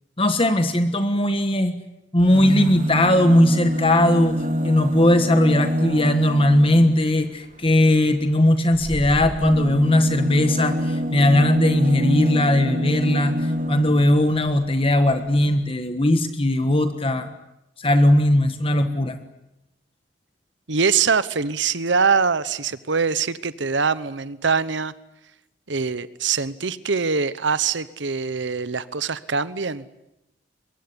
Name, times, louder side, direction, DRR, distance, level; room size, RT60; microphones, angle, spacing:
voice 1, 0.2-1.7 2.1-17.3 17.8-19.2, left 1 dB, 30° left, 8 dB, 1.4 m, -19 dB
sound 1, 2.2-7.1 8.7-14.2 15.1-15.2 15.4-15.5, equal, 40° right, 2.2 m, -25 dB
voice 2, 20.7-24.9 25.7-29.8, right 5 dB, 75° right, 16 dB, 1.0 m, -23 dB
23.5 x 23.0 x 9.8 m, 0.88 s
head